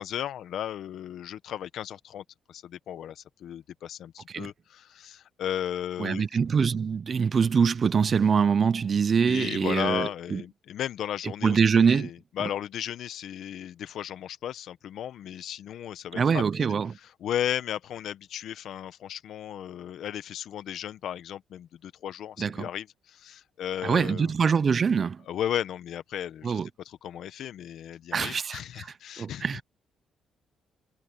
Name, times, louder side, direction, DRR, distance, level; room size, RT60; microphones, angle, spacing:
voice 1, 0.0-6.3 9.2-11.6 11.9-16.4 17.0-24.3 25.3-26.6 26.8-29.6, left 10 dB, 75° left, 1.1 m, -35 dB
voice 2, 6.0-10.4 11.4-12.1 12.4-12.5 16.1-16.9 22.4-22.6 23.8-25.2 26.4-26.7 28.1-28.9 29.2-29.6, right 6 dB, 45° right, 0.6 m, -24 dB
cardioid pair, 90°, 0 cm